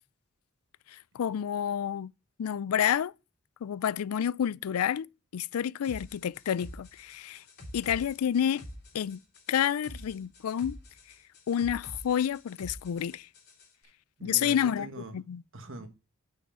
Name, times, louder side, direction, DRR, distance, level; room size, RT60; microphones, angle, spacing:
voice 1, 0.9-2.1 2.4-3.1 3.6-5.1 5.3-7.4 7.7-8.6 8.9-9.2 9.5-10.8 11.5-13.3 14.2-15.4, left 9 dB, 80° left, 0.4 m, -29 dB
sound 1, 5.8-13.7, left 1 dB, 50° left, 2.9 m, -47 dB
voice 2, 14.2-15.1 15.5-15.9, right 1 dB, 60° right, 1.5 m, -42 dB
6.4 x 5.6 x 6.6 m
head